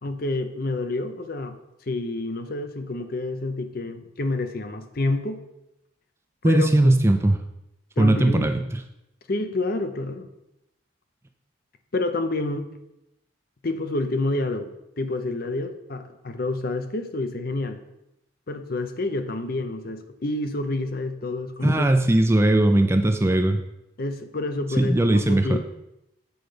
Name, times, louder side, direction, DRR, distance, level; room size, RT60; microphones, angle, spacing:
voice 1, 0.0-1.6 1.9-5.4 6.4-6.9 8.0-8.5 9.3-10.3 11.9-12.7 13.6-14.7 15.0-17.8 18.5-21.9 24.0-25.6, left 2 dB, 45° left, 8 dB, 0.6 m, -28 dB
voice 2, 6.4-7.4 8.0-8.6 21.6-23.6 24.8-25.6, right 1 dB, 15° right, 6 dB, 0.4 m, -19 dB
7.9 x 5.2 x 5.0 m, 0.87 s
head